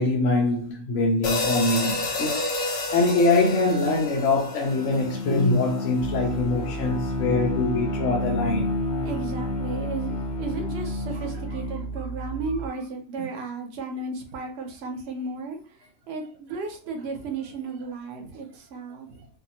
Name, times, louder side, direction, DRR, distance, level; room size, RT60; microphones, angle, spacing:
voice 1, 0.0-2.4 2.9-8.7, left 2 dB, 70° left, 1.0 m, -23 dB
sound 1, 1.2-5.6, left 2 dB, 55° left, 0.6 m, -30 dB
Bowed string instrument, 4.2-12.0, left 3 dB, 10° left, 0.4 m, -31 dB
sound 2, 6.0-12.7, right 5 dB, 35° right, 0.6 m, -35 dB
voice 2, 9.0-19.3, right 3 dB, 60° right, 0.9 m, -34 dB
2.6 x 2.6 x 2.7 m
omnidirectional pair, 1.4 m